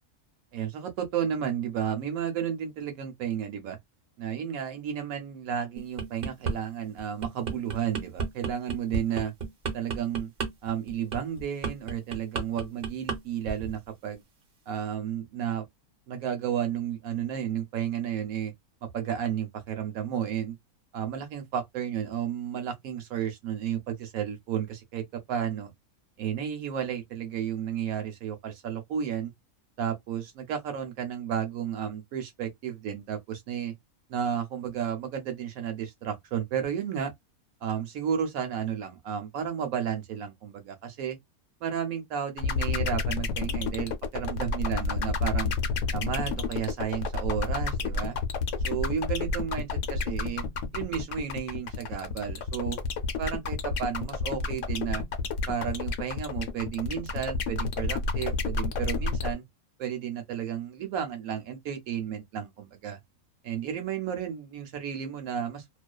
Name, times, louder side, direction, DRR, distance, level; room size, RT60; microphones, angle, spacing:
voice 1, 0.5-3.8 4.2-9.3 9.7-10.3 10.6-14.2 14.7-15.6 16.1-18.5 18.8-20.5 20.9-25.7 26.2-29.3 29.8-33.7 34.1-37.1 37.6-41.2 41.6-45.5 45.9-48.2 48.6-50.4 50.7-52.8 53.2-55.0 55.5-59.4 59.8-63.0 63.4-65.8, right 8 dB, 75° right, 1.0 m, -32 dB
sound 1, 5.8-6.6 7.0-13.2 13.4-13.7, right 5 dB, 50° right, 0.8 m, -32 dB
sound 2, 42.4-59.3, left 4 dB, 65° left, 0.8 m, -29 dB
2.4 x 2.3 x 2.2 m
omnidirectional pair, 1.6 m